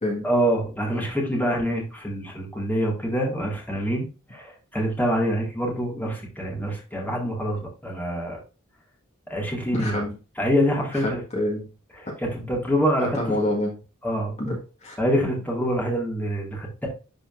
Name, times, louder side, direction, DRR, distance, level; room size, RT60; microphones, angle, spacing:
voice 1, 0.2-4.1 4.3-8.4 9.3-10.0 10.4-11.2 12.0-13.4 14.0-14.3 15.0-16.9, equal, 10° left, -1 dB, 1.9 m, -25 dB
voice 2, 9.7-10.1 10.9-11.7 13.0-13.7 14.4-15.0, left 1 dB, 35° left, -1 dB, 1.6 m, -27 dB
10.5 x 4.0 x 2.5 m, 0.32 s
head